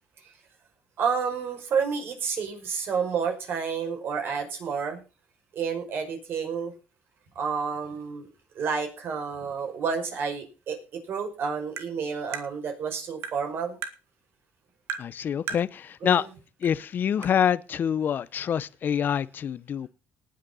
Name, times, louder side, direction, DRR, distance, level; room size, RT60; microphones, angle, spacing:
voice 1, 1.0-5.0 5.5-6.7 7.4-8.3 8.6-10.8 11.1-13.8 16.0-16.3, right 6 dB, 60° right, 5.4 m, -30 dB
Tap, 11.8-11.9 12.3-12.5 13.2-13.4 13.8-14.0 14.9-15.1 15.5-15.7 16.6-16.7 17.2-17.3, right 7 dB, 75° right, 2.0 m, -34 dB
voice 2, 15.0-16.3 16.6-19.9, left 8 dB, 50° left, 0.7 m, -26 dB
19.0 x 6.5 x 5.5 m
cardioid pair, 110°, 4 cm